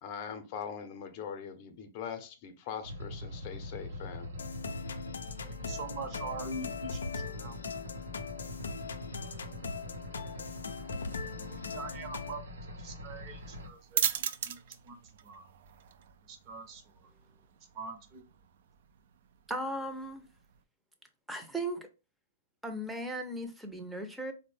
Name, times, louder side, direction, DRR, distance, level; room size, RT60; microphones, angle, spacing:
voice 1, 0.0-4.3, left 7 dB, 45° left, 0.6 m, -41 dB
sound 1, 2.8-13.7, left 1 dB, 85° right, 0.7 m, -43 dB
sound 2, 4.4-12.4, left 5 dB, 90° left, 0.3 m, -41 dB
voice 2, 5.6-7.6 11.7-12.4 12.8-14.2 14.4-14.6 14.9-15.0 15.2-15.4 16.3-16.8 17.7-18.2, right 3 dB, 40° right, 0.7 m, -42 dB
sound 3, 13.4-20.6, right 9 dB, 65° right, 0.3 m, -39 dB
voice 3, 19.5-20.2 21.3-21.9 22.6-24.3, right 1 dB, 5° right, 0.6 m, -37 dB
3.7 x 2.1 x 3.2 m
hypercardioid pair, 125°, 0 cm